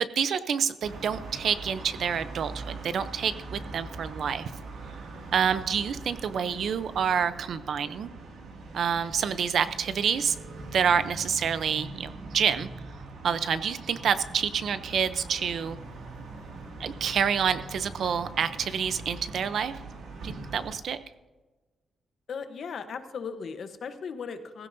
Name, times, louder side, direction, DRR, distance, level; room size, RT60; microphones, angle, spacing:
voice 1, 0.0-4.5 5.3-8.1 8.7-10.4 10.7-12.7 13.2-15.8 16.8-19.7 20.2-21.0, right 7 dB, 60° right, 12 dB, 0.6 m, -28 dB
sound 1, 0.8-20.8, right 2 dB, 85° right, 2.2 m, -42 dB
voice 2, 22.3-24.7, left 6 dB, 55° left, 9 dB, 1.0 m, -37 dB
16.0 x 16.0 x 2.7 m, 1.2 s
wide cardioid pair, 170°, 0 cm